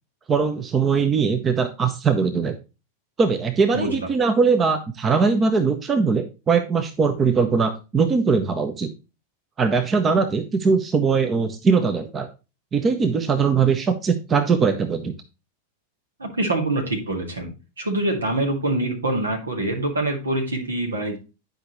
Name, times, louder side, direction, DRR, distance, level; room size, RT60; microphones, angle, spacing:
voice 1, 0.3-2.6 3.2-8.9 9.6-12.3 12.7-15.1, right 5 dB, 20° right, 8 dB, 0.8 m, -21 dB
voice 2, 3.7-4.1 16.2-17.5 17.8-21.2, right 1 dB, 75° right, 3 dB, 2.1 m, -25 dB
10.5 x 5.3 x 3.0 m, 0.29 s
figure-of-eight pair, 90°, 0 cm